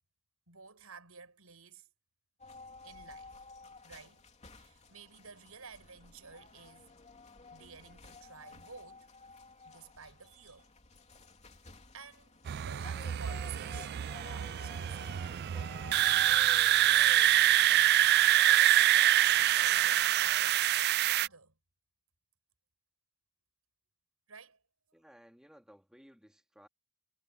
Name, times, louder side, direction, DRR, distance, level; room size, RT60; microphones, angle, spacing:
voice 1, 0.5-1.9 2.8-3.3 3.8-4.2 4.5-6.9 7.5-9.1 9.6-10.7 11.9-12.4 12.6-15.4 16.9-21.5 24.3-24.6, right 5 dB, 80° right, 6.7 m, -52 dB
sound 1, 2.4-20.6, left 3 dB, 30° left, 3.0 m, -53 dB
sound 2, 12.5-21.3, right 13 dB, 50° right, 0.3 m, -26 dB
voice 2, 24.9-26.7, equal, 5° right, 2.8 m, -58 dB
head